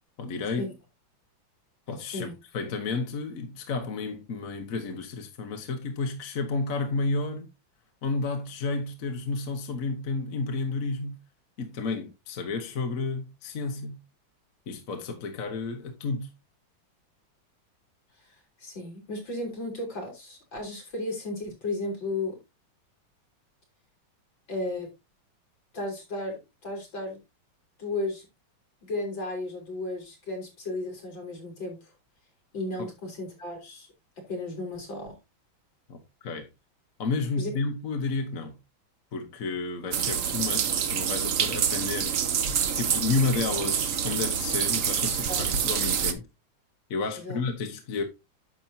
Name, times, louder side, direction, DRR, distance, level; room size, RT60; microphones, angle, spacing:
voice 1, 0.2-0.7 1.9-7.5 8.0-11.2 11.6-14.0 14.7-16.3 35.9-36.5 37.0-38.6 39.1-42.1 42.8-46.2 46.9-48.0, left 3 dB, 45° left, 1.4 m, -31 dB
voice 2, 18.6-22.3 24.5-24.9 25.7-27.2 27.8-28.2 28.8-31.8 32.5-33.9 34.3-35.1 37.4-37.5 45.3-45.4 47.2-47.4, left 2 dB, 65° left, 4.8 m, -34 dB
sound 1, 39.9-46.1, right 8 dB, 60° right, 0.9 m, -27 dB
10.5 x 7.1 x 2.7 m
omnidirectional pair, 2.2 m